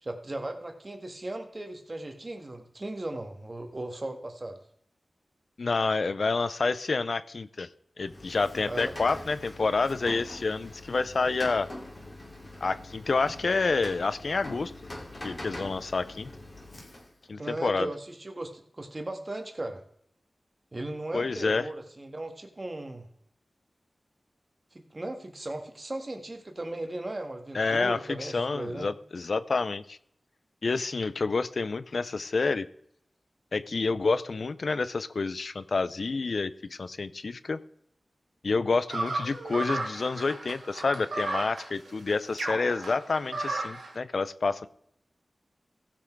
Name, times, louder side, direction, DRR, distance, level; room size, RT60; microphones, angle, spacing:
voice 1, 0.0-4.6 8.7-8.9 17.4-19.8 20.7-23.1 24.7-28.9, right 1 dB, 40° right, 5 dB, 1.8 m, -37 dB
voice 2, 5.6-7.7 8.0-11.7 12.6-14.7 15.2-16.3 17.3-17.9 21.1-21.7 27.5-30.0 30.6-32.7 33.5-37.6 38.4-44.7, left 4 dB, 70° left, 14 dB, 0.6 m, -28 dB
Rain, 8.0-17.3, left 1 dB, 35° left, 2.5 m, -43 dB
sound 1, 38.9-43.9, right 2 dB, 90° right, 1.7 m, -34 dB
15.5 x 6.1 x 4.6 m, 0.69 s
cardioid pair, 50°, 0 cm